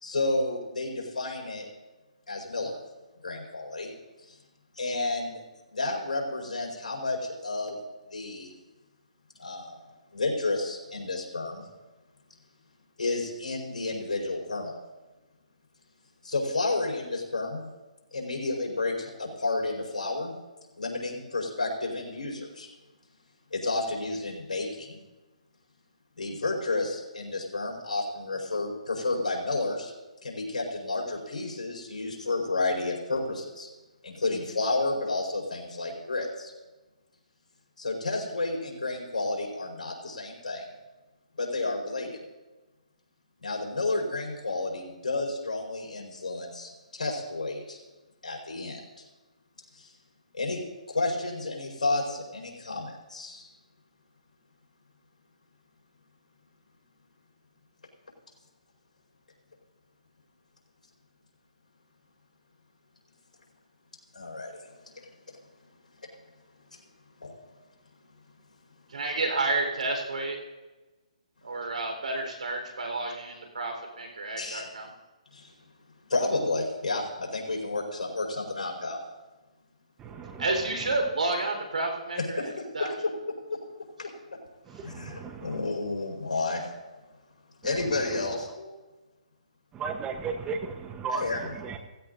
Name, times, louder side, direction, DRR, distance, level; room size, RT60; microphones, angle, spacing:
voice 1, 0.0-1.6 2.3-2.7 3.2-3.9 4.8-5.4 5.7-7.8 8.1-8.5 9.4-9.7 10.1-11.6 13.0-14.8 16.2-17.6 18.1-20.3 20.8-22.7 23.5-25.0 26.2-29.9 30.2-33.7 34.0-36.5 37.8-40.6 41.4-42.1 43.4-47.8 48.2-48.8 50.4-50.6 50.9-53.4 64.1-64.5 67.2-67.3 74.4-74.6 76.1-79.0 82.2-82.5 84.0-84.1 84.8-86.6 87.6-88.7 91.1-91.5, left 2 dB, 80° left, 5.1 m, -31 dB
voice 2, 68.9-70.4 71.4-74.9 80.4-82.9, right 2 dB, 75° right, 4.2 m, -30 dB
voice 3, 80.0-81.1 84.6-85.7 87.6-88.4 89.7-91.8, right 5 dB, 15° right, 1.1 m, -37 dB
17.0 x 15.5 x 2.7 m
hypercardioid pair, 145°, 4 cm